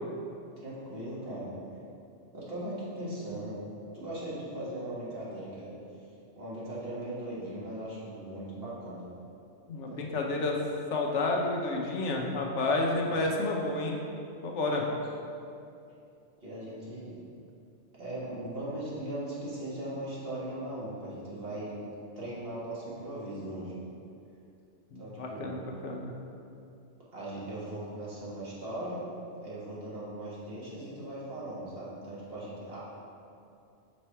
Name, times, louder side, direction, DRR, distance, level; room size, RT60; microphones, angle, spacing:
voice 1, 0.6-1.5 2.3-3.6 3.9-5.7 6.3-9.1 9.9-10.0 13.0-13.2 14.8-14.9 16.4-17.1 18.0-21.8 22.1-23.7 24.9-25.5 27.1-29.0 29.4-32.8, right 1 dB, 55° right, -8 dB, 1.6 m, -39 dB
voice 2, 9.7-10.6 10.9-14.0 14.4-14.9 24.9-26.1, left 2 dB, 75° left, 0 dB, 1.0 m, -30 dB
5.2 x 4.3 x 4.5 m, 2.6 s
omnidirectional pair, 1.2 m